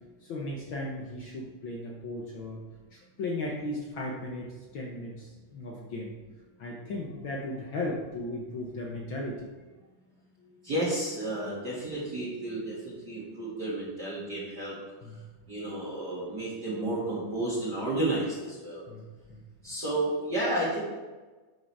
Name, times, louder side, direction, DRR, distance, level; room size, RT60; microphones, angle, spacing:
voice 1, 0.2-2.6 2.9-6.2 6.6-9.5 10.4-10.5 15.0-15.2 18.9-19.5, left 1 dB, 70° left, -1 dB, 1.2 m, -36 dB
voice 2, 10.6-14.7 15.5-18.9 19.6-20.8, right 1 dB, 40° right, -7 dB, 2.0 m, -31 dB
9.8 x 6.3 x 4.6 m, 1.3 s
omnidirectional pair, 3.5 m